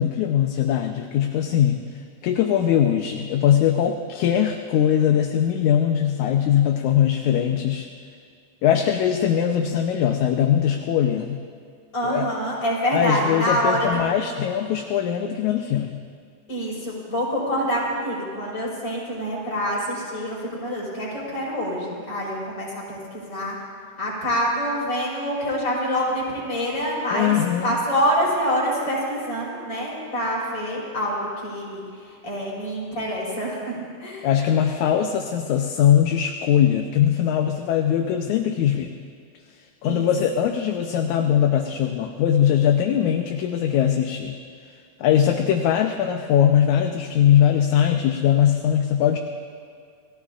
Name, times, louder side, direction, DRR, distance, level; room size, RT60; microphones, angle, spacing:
voice 1, 0.0-1.8 2.2-7.9 8.6-11.4 12.0-12.3 12.9-16.0 27.1-27.7 34.2-38.9 39.8-44.4 45.0-49.2, left 9 dB, 75° left, 3 dB, 2.0 m, -21 dB
voice 2, 11.9-14.0 16.5-23.6 24.0-27.4 27.6-34.3 39.8-40.1 40.4-40.5, equal, 35° left, -6 dB, 5.4 m, -26 dB
29.0 x 17.0 x 2.5 m, 2.2 s
omnidirectional pair, 3.7 m